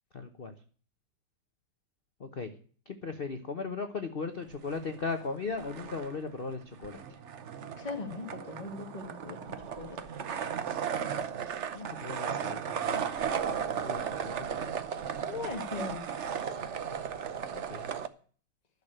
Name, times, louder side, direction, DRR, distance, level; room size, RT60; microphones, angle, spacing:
voice 1, 0.1-0.5 2.2-2.5 2.9-7.2 11.7-13.3 13.7-14.7 17.5-17.9, left 4 dB, 50° left, 7 dB, 0.6 m, -38 dB
sound 1, 4.5-5.3 5.5-18.1, right 7 dB, 80° right, 0.6 m, -35 dB
voice 2, 7.8-9.4 9.8-9.9 14.6-14.7 15.3-16.0 16.5-16.8, left 4 dB, 20° left, 4 dB, 1.6 m, -39 dB
11.0 x 6.6 x 8.7 m, 0.43 s
omnidirectional pair, 2.4 m